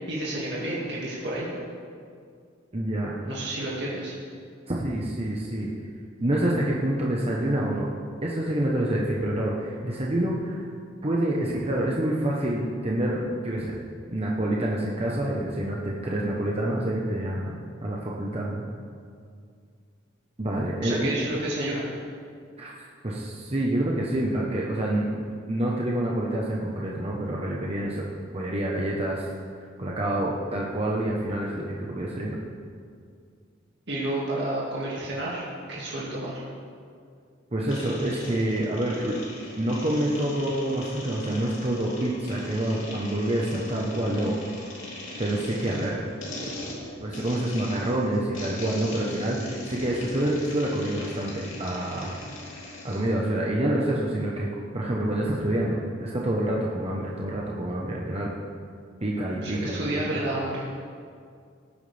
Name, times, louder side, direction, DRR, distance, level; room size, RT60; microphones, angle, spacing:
voice 1, 0.1-1.5 3.2-4.2 20.8-21.8 33.9-36.4 59.4-60.7, right 1 dB, 60° right, -6 dB, 2.3 m, -30 dB
voice 2, 2.7-3.1 4.7-5.7 6.2-7.9 8.2-10.7 11.0-13.8 14.1-17.5 17.8-18.6 20.4-21.1 22.6-22.7 23.0-28.0 28.3-29.3 29.6-32.4 37.5-39.1 39.6-44.3 45.2-46.0 47.0-52.2 52.8-54.5 54.7-58.3 59.0-60.2, right 1 dB, 30° right, -3 dB, 1.0 m, -27 dB
sound 1, 37.7-53.1, left 1 dB, 90° left, 2.9 m, -39 dB
18.0 x 9.4 x 3.4 m, 2.2 s
head